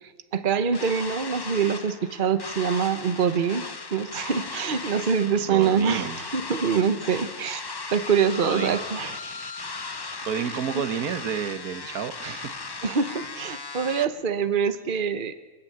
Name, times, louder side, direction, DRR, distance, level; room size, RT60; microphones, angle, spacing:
voice 1, 0.3-7.6 7.9-9.2 10.5-10.6 12.8-15.3, right 6 dB, 40° right, 10 dB, 1.1 m, -25 dB
sound 1, 0.7-14.0, left 4 dB, 40° left, 0.3 m, -37 dB
voice 2, 5.5-6.2 8.4-8.8 9.4-9.5 10.2-12.6, right 8 dB, 80° right, 10 dB, 1.6 m, -30 dB
28.0 x 11.5 x 8.7 m, 1.2 s
omnidirectional pair, 1.6 m